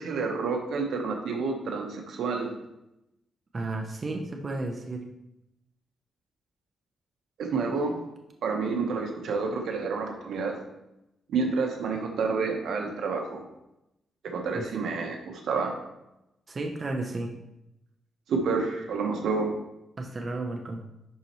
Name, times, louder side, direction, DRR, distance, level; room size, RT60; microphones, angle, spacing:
voice 1, 0.0-2.5 7.4-7.9 8.4-10.6 11.3-13.4 14.2-15.7 18.3-19.5, right 4 dB, 80° right, 2 dB, 1.1 m, -29 dB
voice 2, 3.5-5.0 14.5-14.7 16.5-17.3 20.0-20.8, right 2 dB, 30° right, 2 dB, 0.7 m, -33 dB
11.0 x 4.2 x 3.1 m, 0.88 s
cardioid pair, 140°, 0 cm